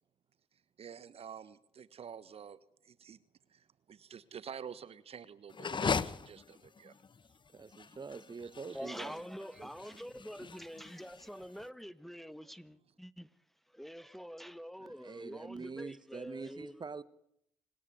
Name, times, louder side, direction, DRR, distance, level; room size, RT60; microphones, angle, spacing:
voice 1, 0.8-2.6 2.8-3.2 3.5-6.9, right 8 dB, 55° right, 1.2 m, -49 dB
sound 1, 5.5-11.6, left 5 dB, 40° left, 1.2 m, -39 dB
voice 2, 7.5-9.2 9.6-9.9 10.4-10.5 14.8-17.0, right 4 dB, 35° right, 1.5 m, -45 dB
voice 3, 8.7-13.3 13.7-16.8, equal, ahead, 1.4 m, -46 dB
26.5 x 18.0 x 9.4 m
hypercardioid pair, 45°, 12 cm